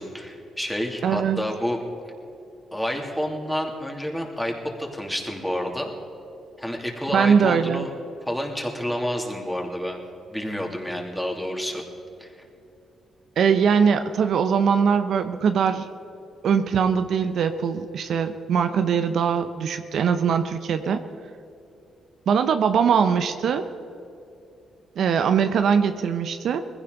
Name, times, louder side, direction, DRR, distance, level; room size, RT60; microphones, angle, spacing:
voice 1, 0.0-1.8 2.7-5.9 6.6-7.9 8.2-10.0 10.3-11.8 12.2-12.3, equal, 5° left, 1 dB, 2.9 m, -29 dB
voice 2, 1.0-1.5 7.1-7.9 13.4-15.9 16.4-21.0 22.3-23.7 25.0-26.6, right 6 dB, 70° right, 9 dB, 0.8 m, -21 dB
20.0 x 16.0 x 4.0 m, 2.7 s
cardioid pair, 70°, 0 cm